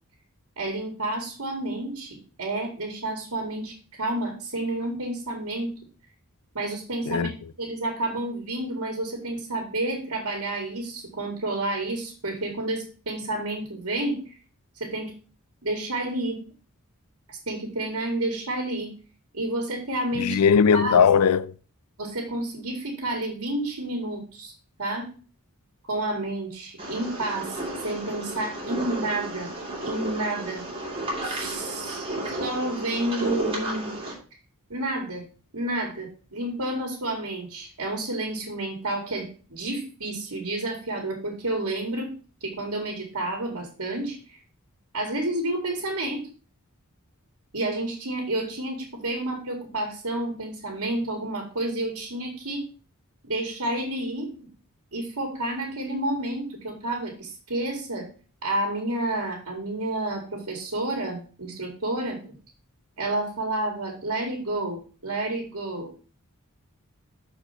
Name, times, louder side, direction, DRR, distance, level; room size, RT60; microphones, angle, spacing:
voice 1, 0.6-5.7 6.5-7.3 7.6-14.3 14.8-15.1 15.6-16.4 17.3-18.9 19.3-20.4 20.7-21.0 22.0-24.5 24.8-25.1 25.9-29.5 29.8-30.6 31.2-33.9 34.7-35.2 35.5-42.1 42.4-44.2 44.9-46.2 47.5-52.7 53.2-54.5 54.9-58.1 58.4-62.3 63.0-65.9, right 1 dB, 80° right, 2.0 m, -30 dB
voice 2, 20.1-21.5, left 6 dB, 85° left, 0.4 m, -19 dB
sound 1, 26.8-34.1, right 1 dB, 25° right, 3.0 m, -33 dB
6.7 x 4.5 x 5.9 m
head